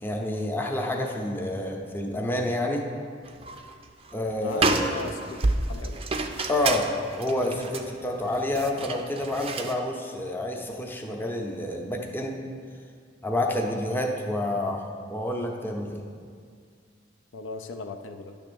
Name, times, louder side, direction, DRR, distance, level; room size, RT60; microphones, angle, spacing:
voice 1, 0.0-2.8 4.1-4.6 6.5-12.4 13.2-14.8 15.1-16.0, left 1 dB, 10° left, 1 dB, 0.7 m, -28 dB
sound 1, 3.3-3.7 4.1-4.2 4.5-9.8, right 3 dB, 30° right, 0.5 m, -29 dB
voice 2, 4.3-5.4 5.7-6.0 17.3-18.4, left 3 dB, 70° left, 6 dB, 0.5 m, -37 dB
10.0 x 3.4 x 6.8 m, 2.1 s
head